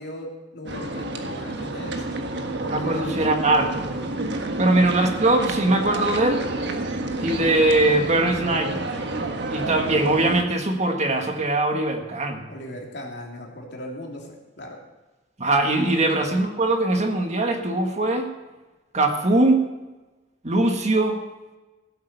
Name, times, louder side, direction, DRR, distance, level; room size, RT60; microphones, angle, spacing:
voice 1, 0.0-3.2 4.6-4.9 12.5-14.8 16.1-16.4, equal, 65° left, 0 dB, 3.1 m, -37 dB
sound 1, 0.7-10.4, right 2 dB, 65° right, 1.5 m, -29 dB
voice 2, 2.7-3.9 4.6-6.5 7.2-8.9 9.5-12.4 15.4-18.3 18.9-19.6 20.4-21.2, right 2 dB, 40° right, 4 dB, 1.6 m, -21 dB
15.5 x 8.7 x 6.8 m, 1.2 s
head